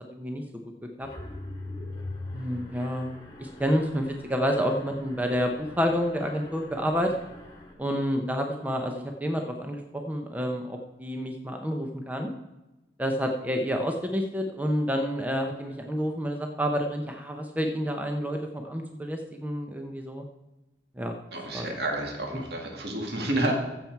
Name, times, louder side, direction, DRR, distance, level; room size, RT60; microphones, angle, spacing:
voice 1, 0.1-0.4 1.0-1.1 2.3-3.1 3.4-7.1 7.8-12.3 13.0-20.2 21.0-21.2 21.5-21.7 22.3-22.4, equal, 10° right, 3 dB, 0.8 m, -29 dB
Mechanisms, 1.0-7.7, left 2 dB, 20° left, 1.7 m, -42 dB
voice 2, 21.3-23.5, right 1 dB, 60° right, 1 dB, 2.0 m, -30 dB
15.0 x 7.3 x 4.6 m, 1.0 s
head